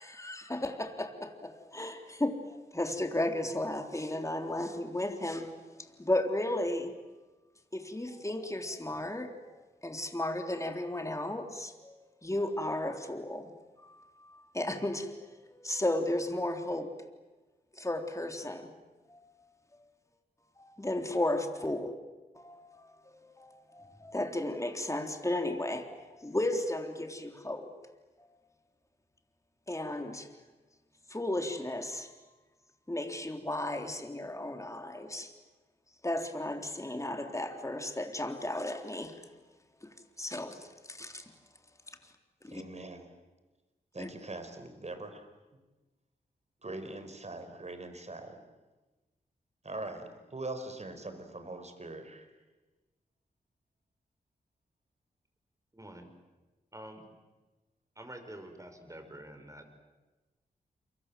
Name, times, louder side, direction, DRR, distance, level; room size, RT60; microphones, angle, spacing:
voice 1, 0.0-2.4 2.7-5.6 6.0-6.9 7.7-12.0 12.2-13.5 13.8-16.9 17.7-18.7 19.1-19.3 20.6-21.9 22.4-27.7 29.7-30.3 31.1-32.1 32.9-35.3 36.0-39.2 39.8-41.2 42.4-42.6 44.0-44.1, left 1 dB, 20° left, 5 dB, 3.7 m, -34 dB
voice 2, 42.5-43.1 43.9-45.3 46.6-48.4 49.6-52.3, right 2 dB, 40° right, 8 dB, 5.0 m, -42 dB
voice 3, 55.7-56.1 56.7-57.1 58.0-59.7, right 1 dB, 20° right, 6 dB, 6.0 m, -47 dB
29.5 x 23.5 x 7.7 m, 1.2 s
cardioid pair, 45°, 17 cm